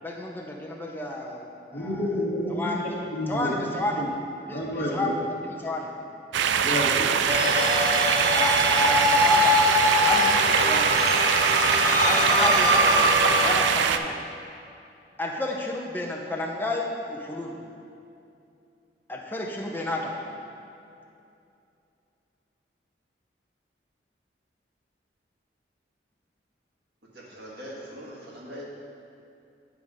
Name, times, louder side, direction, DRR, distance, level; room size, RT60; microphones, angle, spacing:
voice 1, 0.0-1.5 1.7-2.1 2.5-2.8 3.3-4.0 4.5-5.1 5.5-5.9 8.3-9.6 10.0-10.9 12.0-13.1 13.4-14.2 15.2-17.6 19.1-20.2, left 2 dB, 10° left, -1 dB, 0.7 m, -31 dB
voice 2, 1.7-3.5 4.0-4.1 4.5-5.1 6.6-7.1, left 1 dB, 45° left, -5 dB, 1.4 m, -29 dB
sound 1, 6.3-14.0, right 7 dB, 85° right, 0.3 m, -23 dB
sound 2, 7.3-13.6, left 2 dB, 20° right, 1.0 m, -23 dB
voice 3, 27.1-28.6, equal, 65° right, -5 dB, 1.6 m, -41 dB
9.5 x 3.7 x 5.3 m, 2.6 s
head